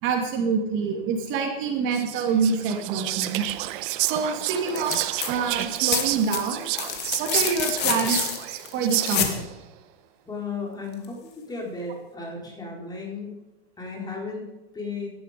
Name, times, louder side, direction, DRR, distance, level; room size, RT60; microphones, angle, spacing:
voice 1, 0.0-3.4 4.0-5.0 5.3-6.7 7.2-8.3 8.7-9.5, right 5 dB, 40° right, 3 dB, 2.6 m, -26 dB
Whispering, 1.9-9.5, right 16 dB, 55° right, 1.1 m, -30 dB
sound 1, 4.7-5.3 5.6-9.4 11.0-11.1, left 9 dB, 35° left, 2.3 m, -28 dB
voice 2, 10.3-13.4 13.8-15.1, left 4 dB, 10° left, -1 dB, 4.4 m, -35 dB
17.5 x 12.0 x 5.2 m, 1.0 s
supercardioid pair, 135°, 31 cm